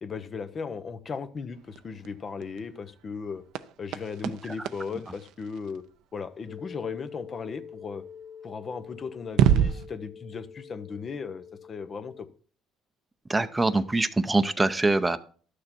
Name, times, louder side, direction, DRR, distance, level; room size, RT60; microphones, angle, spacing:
voice 1, 0.0-3.4 3.8-5.8 6.1-8.0 8.4-12.3, left 5 dB, 40° left, 12 dB, 0.9 m, -37 dB
sound 1, 1.5-6.2 8.5-8.6 9.2-9.9, right 10 dB, 70° right, 0.5 m, -29 dB
sound 2, 6.5-12.2, left 7 dB, 80° left, 1.8 m, -46 dB
voice 2, 13.3-15.2, right 2 dB, 15° right, 9 dB, 0.6 m, -24 dB
12.0 x 6.6 x 4.4 m, 0.42 s
supercardioid pair, 85°, 0 cm